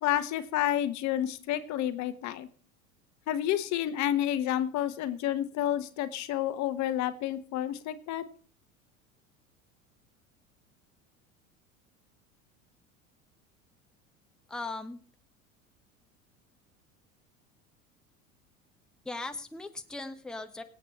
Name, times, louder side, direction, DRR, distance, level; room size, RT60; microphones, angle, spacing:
voice 1, 0.0-2.5 3.3-8.2, left 12 dB, 45° left, 11 dB, 1.2 m, -30 dB
voice 2, 14.5-15.0 19.0-20.6, left 2 dB, ahead, 6 dB, 1.1 m, -38 dB
24.5 x 8.3 x 3.2 m, 0.41 s
figure-of-eight pair, 75°, 41 cm